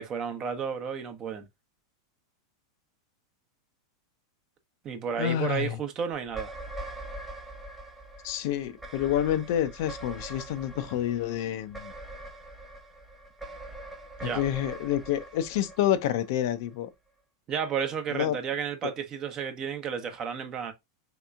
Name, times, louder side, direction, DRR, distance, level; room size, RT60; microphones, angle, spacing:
voice 1, 0.0-1.5 4.8-6.5 14.2-14.4 17.5-20.7, right 7 dB, 35° right, 0.7 m, -32 dB
voice 2, 5.2-5.8 8.2-11.9 14.2-16.9 18.1-18.4 18.8-18.9, left 11 dB, 60° left, 0.4 m, -28 dB
sound 1, 6.3-16.7, right 2 dB, 5° right, 1.1 m, -43 dB
3.2 x 2.9 x 2.4 m
hypercardioid pair, 110°, 2 cm